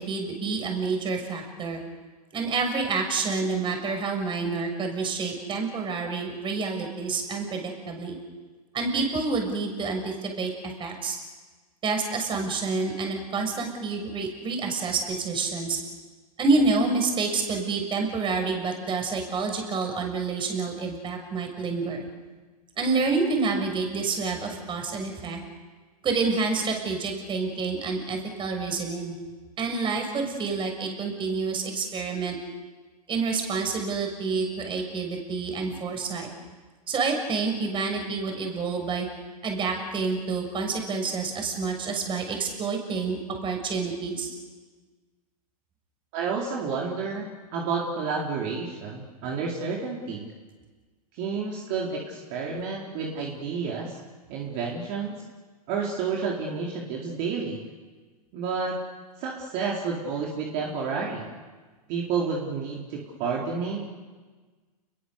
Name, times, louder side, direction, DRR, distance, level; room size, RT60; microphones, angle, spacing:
voice 1, 0.0-1.8 2.3-8.2 8.7-10.5 10.8-11.2 11.8-15.8 16.4-22.1 22.8-25.4 26.0-29.1 29.6-32.4 33.1-36.3 36.9-39.1 39.4-44.3, right 4 dB, 25° right, 3 dB, 6.6 m, -28 dB
voice 2, 46.1-50.3 51.1-54.0 54.3-55.1 55.7-57.6 58.3-58.8 59.2-61.3 61.9-63.8, right 5 dB, 45° right, -2 dB, 4.5 m, -30 dB
29.5 x 22.0 x 6.8 m, 1.3 s
hypercardioid pair, 115°, 20 cm